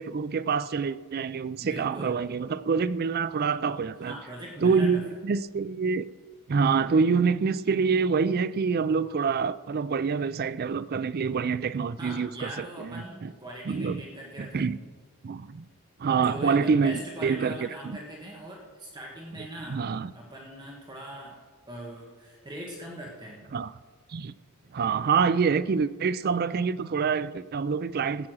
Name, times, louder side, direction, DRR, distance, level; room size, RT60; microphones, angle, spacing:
voice 1, 0.0-4.1 4.6-6.1 6.5-12.9 13.2-13.3 13.7-14.0 14.4-14.8 15.2-15.6 16.0-17.7 19.4-20.1 23.5-23.7 24.1-24.3 24.7-28.3, right 5 dB, 45° right, 0.4 m, -26 dB
voice 2, 1.6-2.2 4.0-5.0 12.0-14.7 16.1-21.4 21.7-23.4, right 1 dB, 20° right, 1.5 m, -41 dB
15.0 x 8.5 x 6.2 m
head